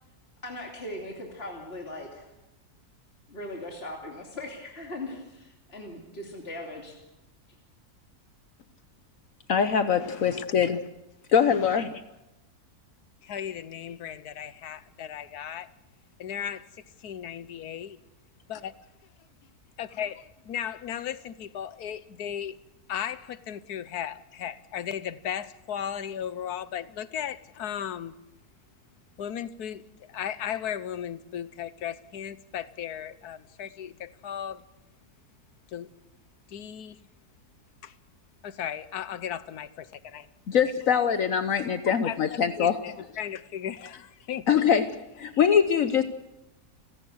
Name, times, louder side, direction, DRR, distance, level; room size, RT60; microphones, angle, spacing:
voice 1, 0.4-2.3 3.3-6.9, left 1 dB, 40° left, 3.1 m, -39 dB
voice 2, 9.5-10.8 11.3-12.0 40.5-42.8 44.5-44.8 45.2-46.0, left 7 dB, 65° left, 1.3 m, -23 dB
voice 3, 10.0-10.5 11.5-11.8 13.2-15.7 16.2-16.7 17.0-18.0 18.5-18.7 19.8-22.6 22.9-28.1 29.2-34.6 35.7-35.9 36.5-37.0 37.8-37.9 38.4-40.3 41.9-44.6, left 9 dB, 80° left, 1.4 m, -36 dB
30.0 x 17.0 x 6.4 m
omnidirectional pair, 1.6 m